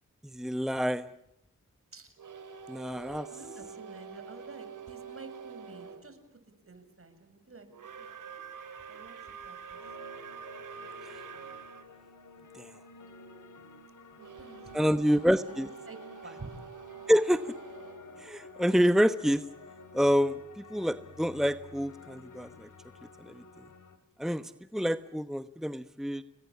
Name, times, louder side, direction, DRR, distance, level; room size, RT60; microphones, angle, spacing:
voice 1, 0.2-1.1 2.7-3.3 11.0-11.2 12.5-12.7 14.7-15.7 17.1-17.4 18.2-19.4 19.9-22.7 23.2-23.4 24.2-26.2, equal, ahead, 11 dB, 1.1 m, -27 dB
sound 1, 2.2-6.0 7.7-11.9 14.2-19.0, right 6 dB, 75° right, 3.8 m, -46 dB
voice 2, 3.3-6.2 6.7-7.7 8.0-8.1 8.9-9.1 9.4-9.8 14.2-15.0 15.5-16.0 16.2-16.6, right 3 dB, 45° right, 9 dB, 7.3 m, -49 dB
sound 2, 9.7-24.0, left 4 dB, 75° left, 3.5 m, -52 dB
30.0 x 21.0 x 8.7 m, 0.83 s
cardioid pair, 60°, 31 cm